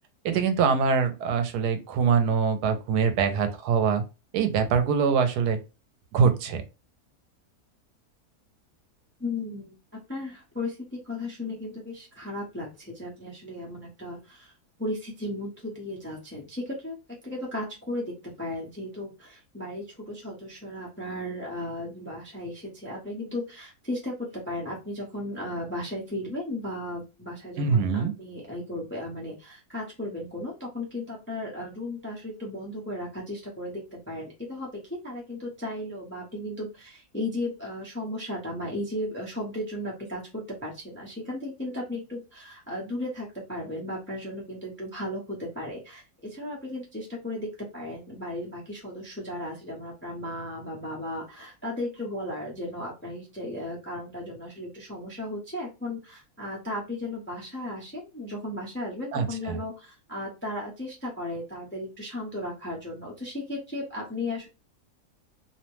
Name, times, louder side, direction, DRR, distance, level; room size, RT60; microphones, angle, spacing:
voice 1, 0.2-4.0 4.3-5.6 6.1-6.6 27.6-28.1 59.1-59.6, right 6 dB, 85° right, 8 dB, 1.1 m, -24 dB
voice 2, 9.2-9.7 10.1-14.5 14.8-17.0 17.2-64.5, left 1 dB, 10° left, -3 dB, 0.5 m, -35 dB
2.8 x 2.1 x 3.0 m, 0.28 s
omnidirectional pair, 1.7 m